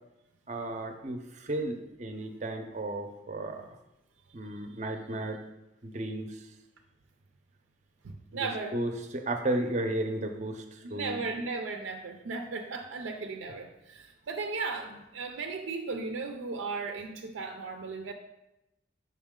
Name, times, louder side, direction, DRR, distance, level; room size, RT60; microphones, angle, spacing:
voice 1, 0.5-3.8 4.3-5.4 5.8-6.5 8.3-11.2, right 1 dB, 35° right, 5 dB, 0.5 m, -34 dB
voice 2, 8.0-8.8 10.8-18.1, right 4 dB, 85° right, 4 dB, 0.5 m, -36 dB
5.5 x 5.2 x 3.7 m, 0.92 s
head